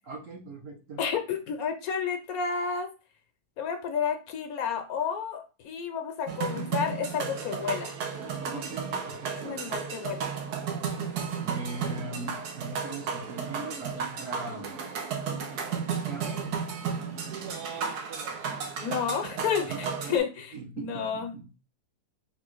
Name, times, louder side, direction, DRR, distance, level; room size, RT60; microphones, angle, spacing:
voice 1, 0.0-1.0 8.5-9.6 11.4-14.9 16.0-16.4 19.6-20.2 20.5-21.4, right 3 dB, 55° right, 0 dB, 1.3 m, -40 dB
voice 2, 1.0-2.9 3.6-8.0 9.4-10.3 18.8-21.3, left 7 dB, 70° left, 6 dB, 1.1 m, -31 dB
sound 1, 6.3-20.2, right 6 dB, 80° right, 1.3 m, -33 dB
3.9 x 2.5 x 4.5 m, 0.32 s
omnidirectional pair, 1.7 m